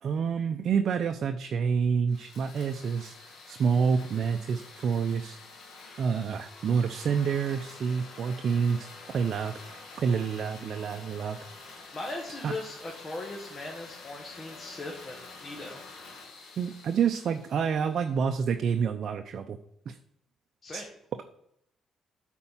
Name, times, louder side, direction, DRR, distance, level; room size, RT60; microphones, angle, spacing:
voice 1, 0.0-3.1 3.5-5.4 6.0-11.4 12.4-12.5 16.6-19.6 19.9-20.0 20.7-20.8, right 6 dB, 60° right, 6 dB, 0.6 m, -28 dB
sound 1, 2.1-18.3, left 3 dB, 75° left, 2.4 m, -48 dB
voice 2, 11.9-15.8 20.6-20.8, left 2 dB, 35° left, 0 dB, 1.5 m, -39 dB
8.5 x 4.5 x 5.7 m, 0.75 s
cardioid pair, 90°, 0 cm